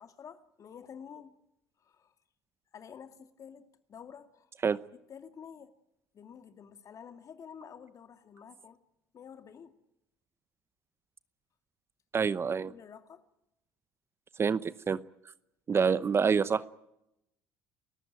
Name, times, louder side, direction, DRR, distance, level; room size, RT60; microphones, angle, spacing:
voice 1, 0.0-1.3 1.8-2.1 2.7-4.5 5.1-5.7 6.1-8.8 9.1-9.8 12.6-13.3 15.7-16.7, left 7 dB, 45° left, 2.3 m, -50 dB
voice 2, 12.1-12.7 14.4-15.0 15.7-16.6, right 6 dB, 30° right, 0.9 m, -27 dB
29.5 x 14.5 x 9.2 m
hypercardioid pair, 65°, 8 cm